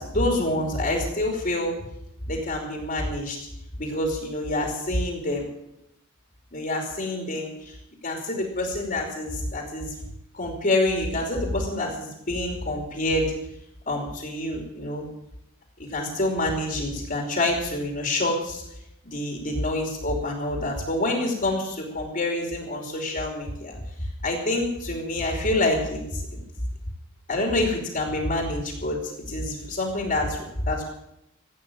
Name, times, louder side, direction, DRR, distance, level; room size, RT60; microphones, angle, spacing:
voice 1, 0.0-1.7 2.3-3.4 3.8-5.4 6.5-7.7 8.0-9.9 10.3-13.2 13.9-15.1 15.8-18.6 19.0-23.8 24.2-26.4 27.3-30.8, left 1 dB, 40° left, 1 dB, 2.9 m, -27 dB
15.5 x 9.0 x 8.6 m, 0.83 s
head